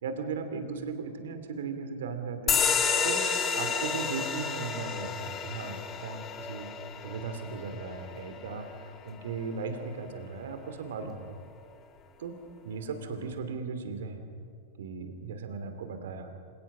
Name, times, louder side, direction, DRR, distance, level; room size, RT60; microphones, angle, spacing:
voice 1, 0.0-2.6 3.0-3.2 3.5-6.7 7.0-11.3 12.2-12.4 12.6-14.2 14.8-16.3, right 5 dB, 70° right, 7 dB, 2.7 m, -37 dB
sound 1, 2.5-9.5, left 6 dB, 30° left, 2.2 m, -31 dB
26.0 x 18.5 x 6.1 m, 2.3 s
hypercardioid pair, 95°, 0 cm